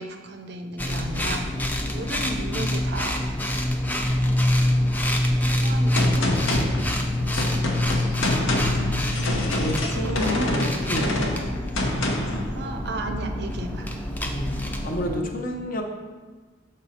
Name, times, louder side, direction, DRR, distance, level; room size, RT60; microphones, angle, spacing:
voice 1, 0.0-1.5 1.9-3.2 4.0-4.4 5.6-6.6 9.0-9.4 9.9-10.7 11.3-11.7 12.5-13.9, right 2 dB, 50° right, 6 dB, 0.5 m, -34 dB
sound 1, 0.8-15.2, left 1 dB, 10° left, 0.4 m, -26 dB
Gunshot gunfire, 5.9-12.4, left 1 dB, 70° left, 0.9 m, -26 dB
voice 2, 9.4-11.1 14.2-15.8, equal, 40° left, 3 dB, 0.7 m, -30 dB
6.3 x 5.5 x 4.1 m, 1.3 s
head